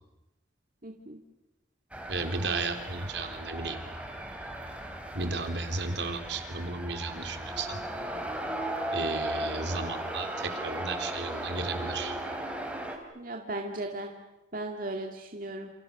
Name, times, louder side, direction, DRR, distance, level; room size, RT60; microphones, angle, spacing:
voice 1, 0.8-1.2 13.1-14.1 14.5-15.7, right 2 dB, 50° right, 2 dB, 2.2 m, -36 dB
sound 1, 1.9-13.0, right 1 dB, 5° right, 3.4 m, -36 dB
voice 2, 2.1-3.8 5.1-7.8 8.9-12.2, right 3 dB, 70° right, 6 dB, 3.5 m, -34 dB
29.0 x 28.5 x 6.7 m, 1.0 s
head